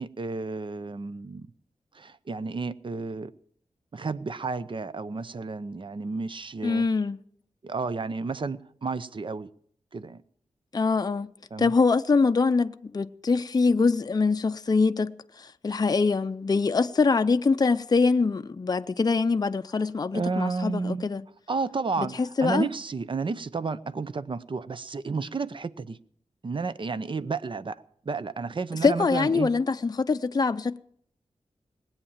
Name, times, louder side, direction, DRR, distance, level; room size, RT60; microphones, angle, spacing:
voice 1, 0.0-1.5 1.9-3.3 3.9-6.9 7.6-9.5 9.9-10.2 11.5-11.7 20.1-21.1 21.5-26.0 26.4-29.5, right 4 dB, 40° right, 0.7 m, -32 dB
voice 2, 6.6-7.2 10.7-11.3 11.6-21.2 22.0-22.7 28.8-30.8, left 4 dB, 30° left, 0.5 m, -24 dB
19.5 x 8.8 x 7.3 m
wide cardioid pair, 105°, 12 cm